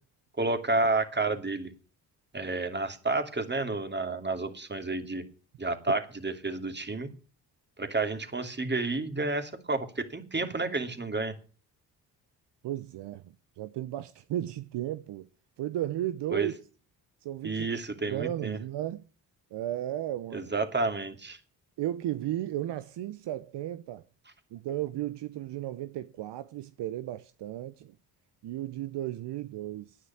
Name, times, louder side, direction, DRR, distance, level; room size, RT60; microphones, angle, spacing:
voice 1, 0.4-1.7 2.3-5.2 5.6-7.1 7.8-11.3 16.3-16.5 17.4-18.6 20.3-21.4, right 3 dB, 25° right, 2.7 m, -30 dB
voice 2, 12.6-15.3 15.6-16.5 17.2-17.7 18.0-19.0 19.5-20.5 21.8-24.0 24.5-28.0 28.4-30.0, right 13 dB, 65° right, 0.8 m, -34 dB
10.5 x 9.6 x 8.6 m
hypercardioid pair, 50°, 45 cm